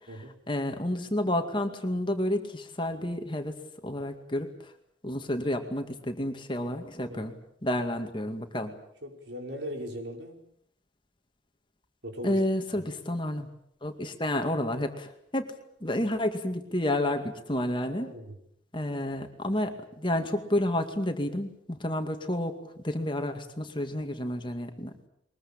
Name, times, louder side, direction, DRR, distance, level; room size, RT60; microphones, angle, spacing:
voice 1, 0.5-3.6 3.8-4.7 5.0-7.3 7.6-8.7 12.2-13.5 13.8-15.5 15.8-18.1 18.7-22.6 22.8-24.9, left 1 dB, 25° left, 6 dB, 2.2 m, -30 dB
voice 2, 9.0-10.4 12.0-12.4 17.9-18.3, equal, 65° right, 3 dB, 5.3 m, -39 dB
23.0 x 21.5 x 8.8 m, 0.71 s
head